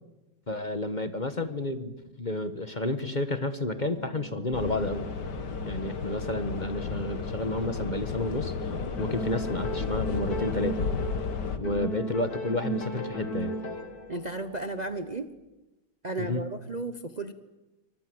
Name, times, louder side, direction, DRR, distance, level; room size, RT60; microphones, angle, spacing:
voice 1, 0.5-5.1 5.6-8.5 9.0-10.9 11.6-13.6 16.2-16.4, left 2 dB, 30° left, 10 dB, 1.5 m, -31 dB
sound 1, 3.7-15.1, right 4 dB, 65° right, 4.6 m, -49 dB
sound 2, 4.5-11.6, left 5 dB, 80° left, 2.2 m, -33 dB
sound 3, 9.0-11.3 11.6-14.1, equal, 60° left, 2.6 m, -35 dB
voice 2, 14.1-15.3 16.0-17.3, right 2 dB, 30° right, 9 dB, 1.0 m, -34 dB
29.0 x 25.0 x 8.0 m, 1.1 s
omnidirectional pair, 1.8 m